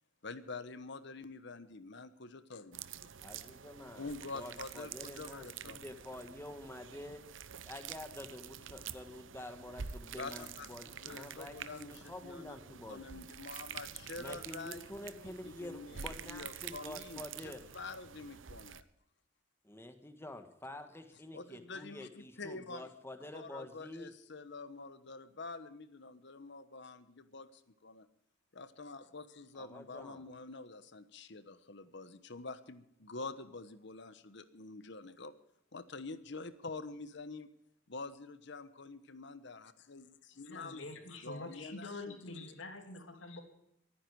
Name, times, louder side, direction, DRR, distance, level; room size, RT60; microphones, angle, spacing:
voice 1, 0.2-2.8 4.0-5.8 6.5-6.6 10.2-18.8 21.3-22.9 23.3-28.1 28.5-35.3 35.7-37.5 37.9-42.5, left 3 dB, 65° left, 13 dB, 1.1 m, -47 dB
sound 1, 2.7-18.8, right 8 dB, 80° right, 0.8 m, -48 dB
voice 2, 3.2-4.1 4.3-7.2 7.6-13.3 14.2-17.6 19.6-24.1 29.6-30.3, left 1 dB, 15° left, 7 dB, 1.5 m, -48 dB
voice 3, 40.5-43.4, left 2 dB, 85° left, 5 dB, 3.0 m, -46 dB
23.5 x 9.9 x 4.8 m, 0.78 s
head